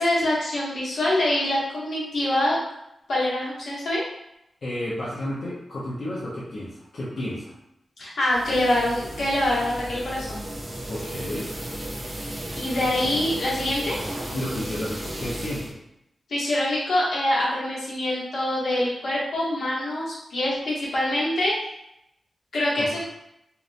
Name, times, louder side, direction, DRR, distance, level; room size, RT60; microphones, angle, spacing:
voice 1, 0.0-2.6 3.1-4.0 8.0-10.4 12.5-14.0 16.3-21.6 22.5-23.0, left 1 dB, 75° left, -7 dB, 0.9 m, -25 dB
voice 2, 4.6-7.5 10.9-11.5 14.3-15.7 22.8-23.0, left 1 dB, 50° left, -8 dB, 0.5 m, -32 dB
sound 1, 8.3-15.7, right 1 dB, 25° right, 0.4 m, -34 dB
2.8 x 2.1 x 2.5 m, 0.81 s
wide cardioid pair, 160°, 0 cm